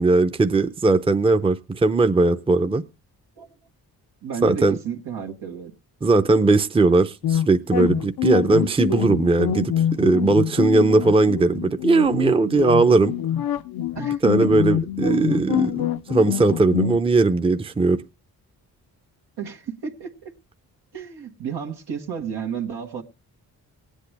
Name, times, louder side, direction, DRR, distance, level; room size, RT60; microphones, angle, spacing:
voice 1, 0.0-2.8 4.4-4.8 6.0-9.7 10.0-13.1 14.2-18.0, right 3 dB, 15° right, 0.6 m, -19 dB
voice 2, 4.2-5.7 13.9-14.5 19.4-20.3 20.9-23.0, right 7 dB, 85° right, 1.6 m, -32 dB
sound 1, 7.2-17.0, left 11 dB, 70° left, 0.6 m, -25 dB
18.5 x 8.3 x 3.3 m
cardioid pair, 70°, 38 cm